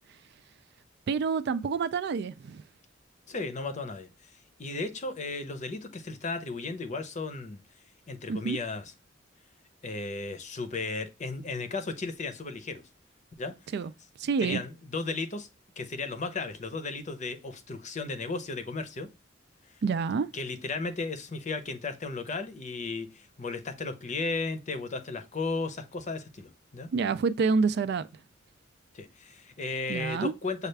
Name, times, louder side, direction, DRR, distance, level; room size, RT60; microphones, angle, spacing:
voice 1, 1.1-2.6 8.3-8.6 13.7-13.9 14.2-14.6 19.8-20.3 26.9-28.1 29.9-30.3, right 5 dB, 60° right, 0.3 m, -27 dB
voice 2, 3.3-4.3 4.6-7.6 8.1-8.9 9.8-12.8 13.4-13.5 14.4-15.5 15.8-19.1 20.3-26.9 28.9-30.7, left 3 dB, 40° left, 0.7 m, -35 dB
6.5 x 2.4 x 3.3 m
head